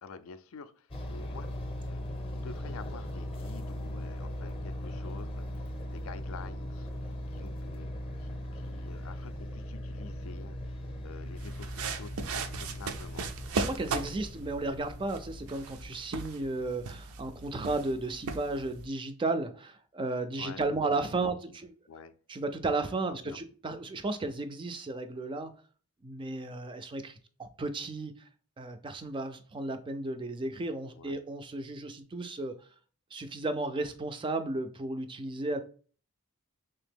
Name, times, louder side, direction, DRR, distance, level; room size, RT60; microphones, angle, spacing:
voice 1, 0.0-13.6 20.4-20.9 21.1-21.6 21.9-22.2 22.8-23.4 30.9-31.2, left 5 dB, 65° left, 0.4 m, -49 dB
sound 1, 0.9-16.0, equal, 25° left, 0.6 m, -39 dB
sound 2, 11.4-18.9, right 4 dB, 85° right, 0.5 m, -38 dB
voice 2, 13.6-21.4 21.6-21.7 22.3-25.5 26.0-28.2 28.6-32.6 33.1-35.6, right 2 dB, 20° right, 0.3 m, -34 dB
3.4 x 2.8 x 3.5 m
head